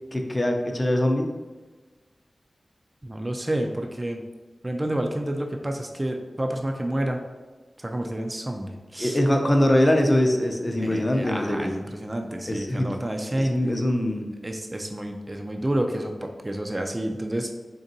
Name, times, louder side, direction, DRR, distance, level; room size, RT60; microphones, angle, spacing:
voice 1, 0.1-1.3 9.0-11.7 12.5-12.9 13.3-14.3, left 1 dB, 30° left, 3 dB, 0.5 m, -22 dB
voice 2, 3.0-4.2 4.6-7.2 7.8-9.2 10.8-13.6 14.4-17.5, right 1 dB, 25° right, 3 dB, 0.4 m, -29 dB
3.9 x 3.4 x 2.7 m, 1.3 s
wide cardioid pair, 60°, 0 cm